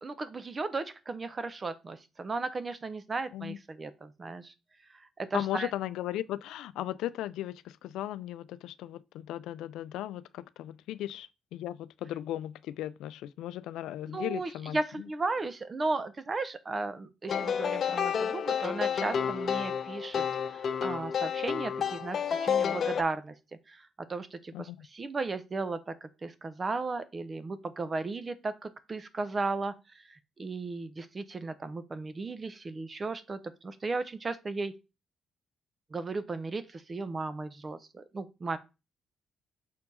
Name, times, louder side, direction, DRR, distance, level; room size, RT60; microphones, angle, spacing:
voice 1, 0.0-4.5 5.2-5.7 14.1-20.2 20.5-23.3 23.7-23.8 24.1-29.7 30.4-34.7 35.9-38.6, right 3 dB, 30° right, 0.9 m, -35 dB
voice 2, 5.3-14.8 24.5-24.9, left 13 dB, 90° left, 0.4 m, -37 dB
sound 1, 17.3-23.0, left 7 dB, 55° left, 0.8 m, -30 dB
6.4 x 4.5 x 4.2 m
cardioid pair, 90°, 0 cm